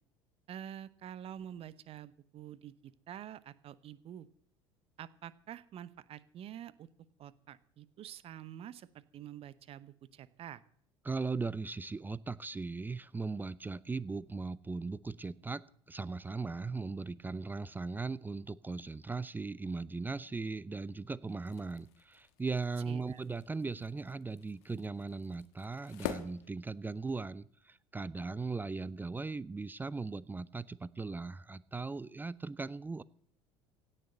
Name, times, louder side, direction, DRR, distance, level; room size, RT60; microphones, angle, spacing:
voice 1, 0.5-4.3 5.0-6.9 7.2-10.6 22.9-23.2, right 10 dB, 40° right, 18 dB, 0.9 m, -47 dB
voice 2, 11.0-33.0, right 4 dB, 10° right, 21 dB, 0.5 m, -38 dB
sound 1, 21.3-27.3, left 10 dB, 65° left, 1.3 m, -47 dB
16.5 x 6.7 x 8.8 m, 0.65 s
figure-of-eight pair, 65°, 15 cm